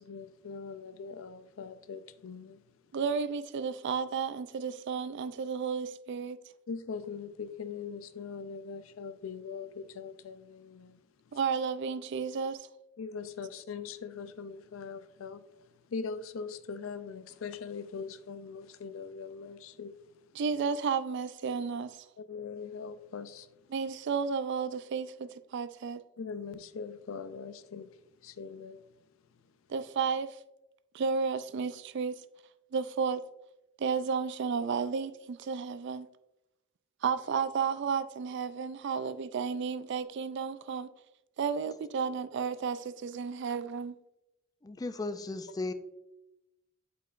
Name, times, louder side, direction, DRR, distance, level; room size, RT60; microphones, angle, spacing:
voice 1, 0.0-2.6 6.7-11.0 13.0-15.4 15.9-19.9 22.2-23.5 26.2-27.9 28.2-28.8, left 5 dB, 90° left, 0.5 m, -41 dB
voice 2, 2.9-6.4 11.3-12.7 20.3-22.1 23.7-26.0 29.7-30.4 30.9-32.2 32.7-33.2 33.8-36.1 37.0-40.9 41.4-44.0, right 6 dB, 60° right, 0.4 m, -32 dB
voice 3, 44.6-45.7, left 2 dB, 20° left, 0.3 m, -36 dB
8.1 x 4.7 x 2.5 m
head